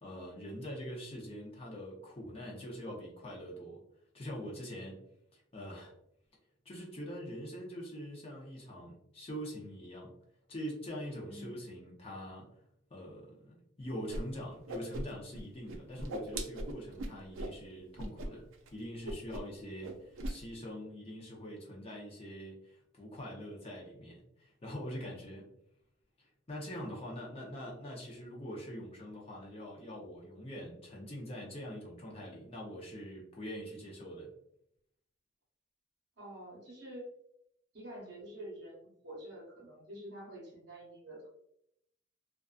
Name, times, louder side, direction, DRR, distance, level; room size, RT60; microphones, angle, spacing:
voice 1, 0.0-3.8 4.1-5.0 5.3-5.9 6.6-10.1 10.5-12.5 12.9-25.6 26.5-34.3, equal, 30° left, -2 dB, 0.6 m, -44 dB
voice 2, 11.2-11.6 36.2-37.1 37.7-41.3, right 1 dB, 60° right, -3 dB, 0.8 m, -47 dB
Whoosh swoosh swish, 14.1-14.2 14.5-15.4 15.7-17.6 18.0-18.3 18.5-18.7 19.0-19.6 19.8-20.4, right 1 dB, 85° right, 0.4 m, -39 dB
2.4 x 2.3 x 2.3 m, 0.75 s
head